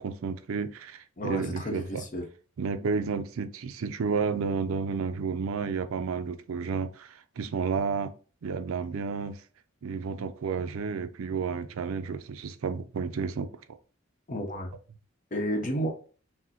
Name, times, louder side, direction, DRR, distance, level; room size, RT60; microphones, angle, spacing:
voice 1, 0.0-2.0 2.6-8.1 8.4-9.4 9.8-13.5, right 5 dB, 75° right, 0.4 m, -31 dB
voice 2, 1.2-2.3 14.3-14.7 15.3-15.9, equal, 35° left, 0.7 m, -31 dB
6.1 x 2.1 x 2.8 m
head